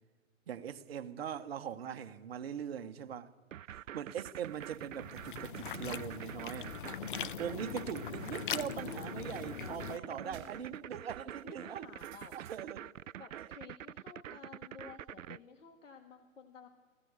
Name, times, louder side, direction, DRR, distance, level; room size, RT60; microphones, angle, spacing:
voice 1, 0.5-3.3 3.7-6.7 7.4-11.9 12.3-12.9 13.3-13.4, right 9 dB, 45° right, 1.3 m, -41 dB
sound 1, 3.5-15.4, right 10 dB, 70° right, 0.5 m, -46 dB
sound 2, 4.3-12.6, right 9 dB, 30° right, 3.0 m, -63 dB
sound 3, 4.5-10.0, left 9 dB, 40° left, 0.6 m, -41 dB
voice 2, 6.1-7.1 9.6-10.9 11.4-12.4 13.2-16.7, left 5 dB, 65° left, 2.1 m, -53 dB
19.5 x 16.0 x 8.1 m
figure-of-eight pair, 135°, 41 cm